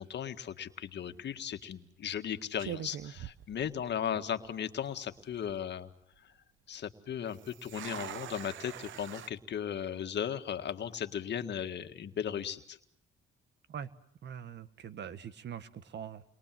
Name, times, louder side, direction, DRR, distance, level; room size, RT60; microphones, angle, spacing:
voice 1, 0.0-5.9 6.7-12.8, left 9 dB, 60° left, 8 dB, 1.8 m, -36 dB
sound 1, 1.0-1.3 2.1-2.2 2.6-4.2 4.4-4.5 5.2-5.5 7.3-9.3, right 11 dB, 75° right, 1.0 m, -44 dB
voice 2, 14.2-16.2, right 8 dB, 60° right, 12 dB, 1.6 m, -43 dB
29.5 x 22.5 x 7.6 m, 0.70 s
cardioid pair, 90°, 20 cm